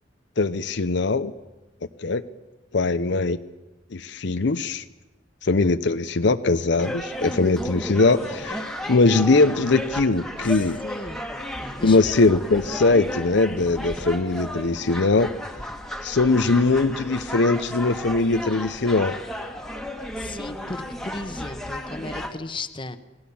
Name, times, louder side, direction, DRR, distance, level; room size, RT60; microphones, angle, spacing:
voice 1, 0.4-1.3 2.0-2.2 2.7-3.4 3.9-4.8 5.4-10.8 11.8-15.3 16.0-19.2, left 3 dB, 65° left, 11 dB, 0.7 m, -21 dB
sound 1, 6.8-22.3, left 1 dB, 5° left, 1.8 m, -34 dB
voice 2, 10.4-11.2 11.8-12.0 20.2-23.0, left 2 dB, 25° left, 10 dB, 1.1 m, -36 dB
26.5 x 18.0 x 7.1 m, 1.0 s
head